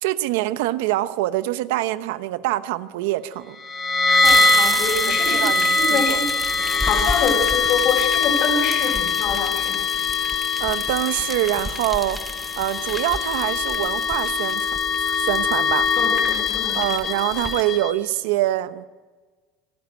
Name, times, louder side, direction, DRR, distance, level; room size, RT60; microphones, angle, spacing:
voice 1, 0.0-3.6 5.1-6.2 10.6-12.2 12.6-15.9 16.7-18.8, right 16 dB, 85° right, 13 dB, 0.9 m, -25 dB
sound 1, 3.6-17.9, left 4 dB, 30° left, 2.6 m, -22 dB
voice 2, 4.2-9.7 16.0-16.8, left 4 dB, 45° left, 3 dB, 5.2 m, -26 dB
sound 2, 4.2-17.6, equal, ahead, 1.1 m, -33 dB
26.0 x 12.5 x 9.0 m, 1.4 s
cardioid pair, 145°, 0 cm